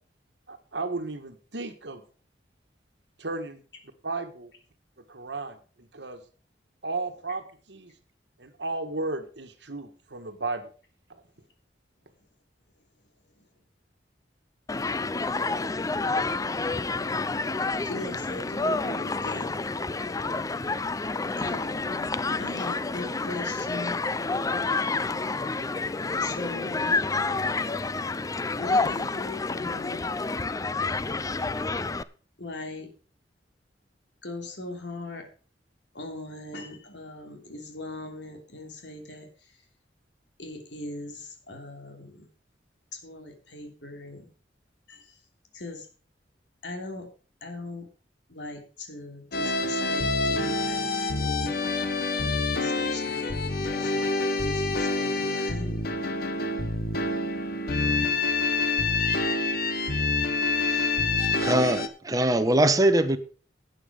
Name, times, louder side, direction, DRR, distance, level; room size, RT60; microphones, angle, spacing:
voice 1, 0.5-2.0 3.2-3.6 4.0-4.5 5.1-6.2 6.8-7.9 8.4-10.7 11.1-11.2, right 3 dB, 70° right, 8 dB, 1.6 m, -34 dB
Human group actions, 14.7-32.0, left 3 dB, 20° left, 0.4 m, -29 dB
voice 2, 17.8-19.5 21.4-22.1 22.4-24.0 26.2-27.0 28.6-30.1 32.4-32.9 34.2-35.3 35.9-39.6 40.4-42.3 42.9-44.3 44.9-45.2 45.5-45.9 46.6-47.1 47.4-47.9 48.3-51.9 52.5-55.8, left 2 dB, 75° left, 4 dB, 3.1 m, -40 dB
sound 1, 49.3-61.9, left 3 dB, 60° left, 1.4 m, -27 dB
voice 3, 60.6-60.9 61.4-63.2, right 1 dB, 20° right, 10 dB, 1.1 m, -22 dB
12.0 x 8.8 x 5.0 m, 0.39 s
head